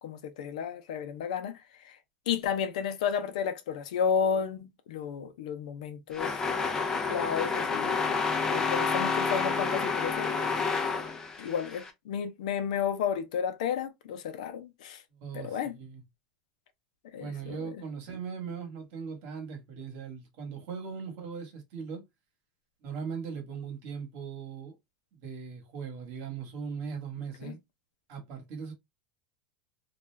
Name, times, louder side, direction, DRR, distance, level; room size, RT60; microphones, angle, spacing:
voice 1, 0.0-1.6 1.8-2.0 2.3-6.4 7.0-8.0 8.5-10.3 11.4-15.0 15.3-15.8 17.1-17.8 27.4-27.6, left 7 dB, 80° left, 0.6 m, -32 dB
sound 1, 6.1-11.9, left 4 dB, 15° left, 0.5 m, -29 dB
voice 2, 15.1-16.0 17.2-22.0 22.8-24.7 25.1-27.6 28.1-28.7, right 6 dB, 55° right, 1.2 m, -39 dB
2.5 x 2.2 x 3.2 m
supercardioid pair, 145°, 4 cm